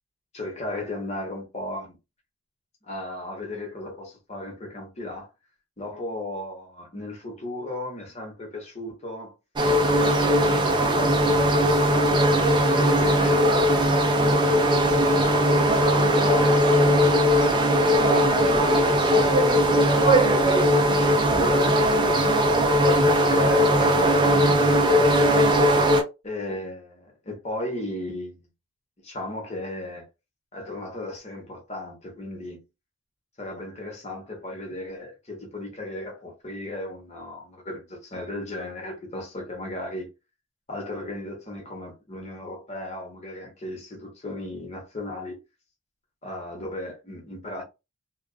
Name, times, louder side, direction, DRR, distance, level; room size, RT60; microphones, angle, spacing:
voice 1, 0.3-2.0 2.9-5.3 5.8-9.3 9.8-13.4 15.0-17.2 18.3-20.1 20.8-21.8 23.1-25.5 26.2-28.5 29.0-30.1 30.5-32.6 33.4-40.1 40.7-45.4 46.2-47.6, left 1 dB, 30° left, 1.0 m, -35 dB
sound 1, 9.6-26.0, equal, 20° right, 0.4 m, -19 dB
2.5 x 2.3 x 2.3 m
head